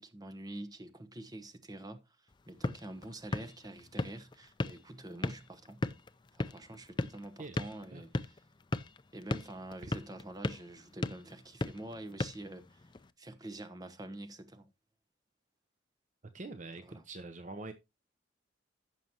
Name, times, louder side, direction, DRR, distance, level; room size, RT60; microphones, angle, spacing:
voice 1, 0.0-5.8 6.3-8.4 9.1-12.8 13.2-14.7 16.8-17.0, right 1 dB, 20° right, 1.0 m, -46 dB
sound 1, 2.3-13.1, left 2 dB, 25° left, 0.5 m, -39 dB
voice 2, 7.4-8.0 16.3-17.7, right 2 dB, 40° right, 0.8 m, -45 dB
14.5 x 6.2 x 2.9 m
head